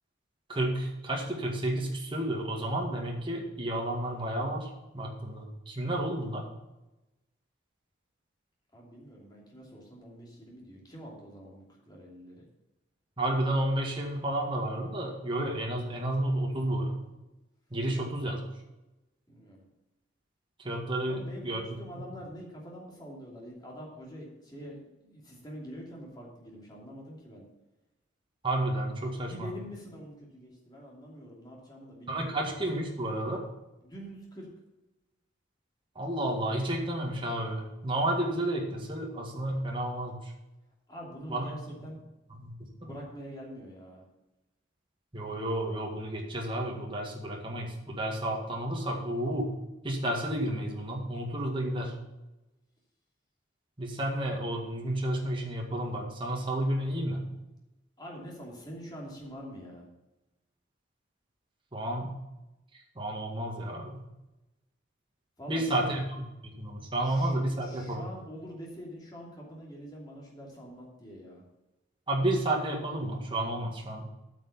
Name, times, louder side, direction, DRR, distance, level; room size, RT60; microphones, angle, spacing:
voice 1, 0.5-6.5 13.2-17.1 17.7-18.4 20.6-21.6 28.4-29.5 32.1-33.4 36.0-40.3 41.3-41.4 42.4-42.5 45.1-49.5 49.8-52.0 53.8-57.3 61.7-62.1 63.0-64.0 65.5-66.0 66.4-68.0 72.1-74.0, right 1 dB, 25° right, 0 dB, 1.9 m, -31 dB
voice 2, 8.7-12.4 19.3-19.7 21.1-27.5 29.3-32.7 33.8-34.5 40.9-42.0 42.6-44.0 58.0-59.9 65.4-66.0 67.0-71.4, equal, 20° left, -2 dB, 2.7 m, -45 dB
9.0 x 6.2 x 7.2 m, 1.0 s
head